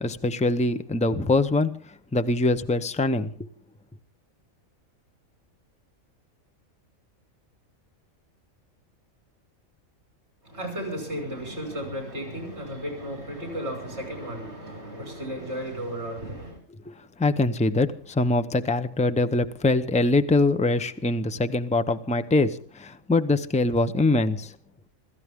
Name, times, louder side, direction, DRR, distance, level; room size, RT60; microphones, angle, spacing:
voice 1, 0.0-1.7 2.1-3.3 16.9-17.0 17.2-24.5, left 2 dB, 5° left, 0.6 m, -23 dB
voice 2, 10.4-16.6, equal, 50° right, 6.1 m, -34 dB
27.0 x 14.0 x 3.7 m
omnidirectional pair, 1.4 m